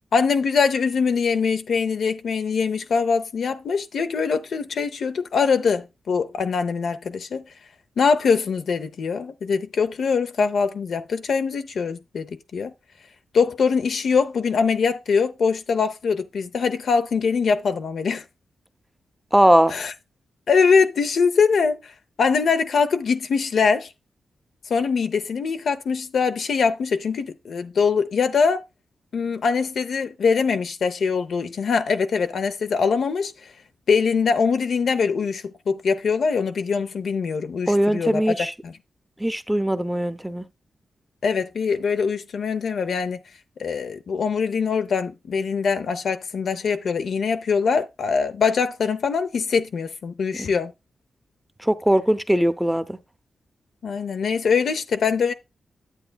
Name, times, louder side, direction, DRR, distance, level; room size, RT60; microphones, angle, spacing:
voice 1, 0.1-7.4 8.0-12.7 13.3-18.2 19.7-19.9 20.5-21.9 22.2-23.9 24.7-28.6 29.1-33.3 33.9-38.8 41.2-43.2 43.6-50.7 53.8-55.3, left 5 dB, 75° left, 0.6 m, -23 dB
voice 2, 19.3-19.7 37.7-38.5 39.2-40.4 51.6-53.0, right 1 dB, 5° right, 0.7 m, -20 dB
10.0 x 7.8 x 2.3 m
cardioid pair, 65°, 0 cm